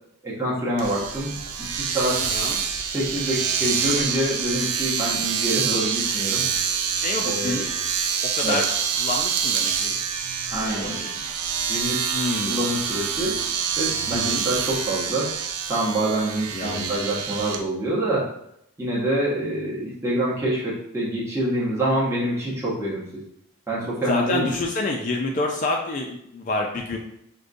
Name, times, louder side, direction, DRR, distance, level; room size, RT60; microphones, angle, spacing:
voice 1, 0.2-1.3 1.7-2.3 2.9-6.4 7.2-7.6 8.4-8.6 10.5-11.0 11.7-12.0 12.5-13.4 13.8-15.3 15.7-18.3 18.8-23.2 23.7-24.5, right 1 dB, 10° right, -8 dB, 0.7 m, -26 dB
Domestic sounds home sounds, 0.8-17.6, right 7 dB, 85° right, 0.4 m, -26 dB
voice 2, 2.2-2.6 6.9-7.7 8.2-8.7 8.9-9.9 10.6-11.1 12.1-12.6 14.1-14.4 16.5-17.0 24.1-27.0, left 2 dB, 35° left, 1 dB, 0.3 m, -28 dB
4.9 x 2.2 x 2.5 m, 0.76 s
head